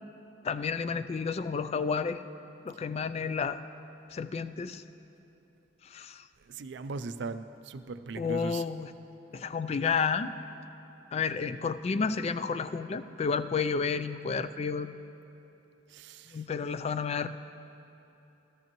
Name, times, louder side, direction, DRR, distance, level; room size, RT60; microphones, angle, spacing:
voice 1, 0.4-2.2 2.6-3.6 4.1-4.8 5.8-6.3 8.2-8.9 9.3-10.3 11.1-14.9 16.3-17.3, left 5 dB, 35° left, 12 dB, 0.3 m, -31 dB
voice 2, 6.4-8.6 15.9-16.5, right 4 dB, 65° right, 11 dB, 0.4 m, -39 dB
15.0 x 13.5 x 3.0 m, 2.9 s
head